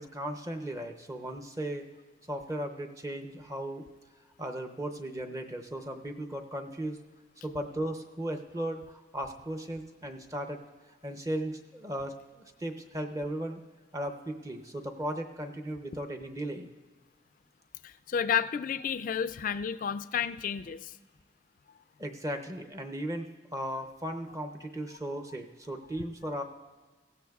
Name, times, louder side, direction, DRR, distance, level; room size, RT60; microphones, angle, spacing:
voice 1, 0.0-1.9 2.3-3.9 4.4-7.0 7.4-10.6 11.0-13.6 13.9-16.7 22.0-26.4, right 1 dB, 20° right, 5 dB, 0.6 m, -36 dB
voice 2, 17.8-20.9, left 8 dB, 45° left, 13 dB, 0.3 m, -31 dB
16.0 x 15.5 x 2.4 m, 1.4 s
head